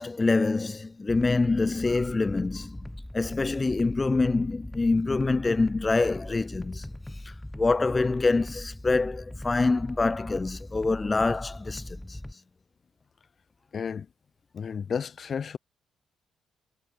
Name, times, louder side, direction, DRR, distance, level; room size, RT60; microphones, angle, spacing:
voice 1, 0.0-2.9 3.1-6.9 7.2-12.2, left 3 dB, 25° left, 4.1 m, -26 dB
sound 1, 1.1-12.3, left 1 dB, 5° left, 7.0 m, -40 dB
voice 2, 13.7-14.1 14.5-15.6, left 6 dB, 45° left, 5.2 m, -32 dB
cardioid pair, 90°, 0 cm